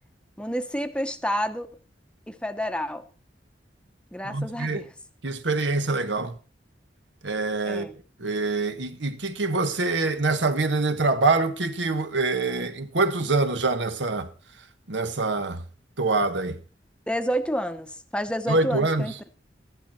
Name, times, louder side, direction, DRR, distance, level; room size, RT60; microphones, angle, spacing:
voice 1, 0.4-1.7 2.3-3.0 4.1-4.9 7.6-7.9 17.1-19.1, equal, 5° left, 0.8 m, -29 dB
voice 2, 4.2-4.8 5.2-6.4 7.2-7.9 8.2-14.3 14.9-15.6 16.0-16.6 18.5-19.1, right 3 dB, 90° right, 1.3 m, -25 dB
14.0 x 11.5 x 4.4 m
head